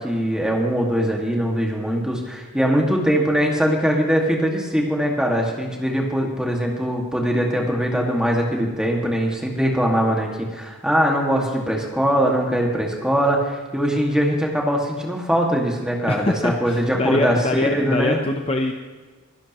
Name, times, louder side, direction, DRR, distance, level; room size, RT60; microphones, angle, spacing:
voice 1, 0.0-18.2, equal, 5° right, 0 dB, 1.9 m, -21 dB
voice 2, 16.1-18.7, left 2 dB, 25° left, 4 dB, 0.7 m, -23 dB
23.0 x 11.5 x 3.0 m, 1.4 s
head